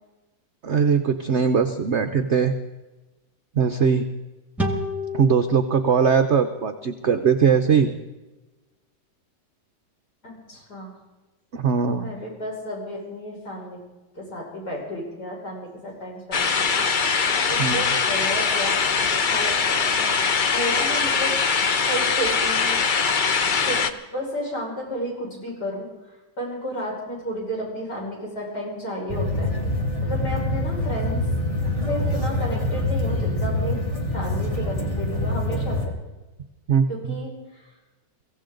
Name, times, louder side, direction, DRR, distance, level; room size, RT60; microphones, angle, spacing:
voice 1, 0.6-2.5 3.5-4.1 5.1-7.9 11.5-12.1 17.6-17.8 36.7-37.2, right 6 dB, 60° right, 7 dB, 0.7 m, -20 dB
sound 1, 4.6-7.9, left 1 dB, ahead, 1.5 m, -32 dB
voice 2, 10.2-11.0 12.0-13.8 14.1-21.4 21.8-22.8 23.4-23.8 24.1-29.5 30.0-31.2 31.8-33.8 34.1-35.8 36.9-37.7, equal, 60° left, -3 dB, 6.3 m, -32 dB
sound 2, 16.3-23.9, left 5 dB, 75° left, 0.4 m, -22 dB
sound 3, 29.1-35.9, left 1 dB, 20° left, 2.1 m, -25 dB
23.5 x 16.0 x 3.9 m, 1.1 s
omnidirectional pair, 2.0 m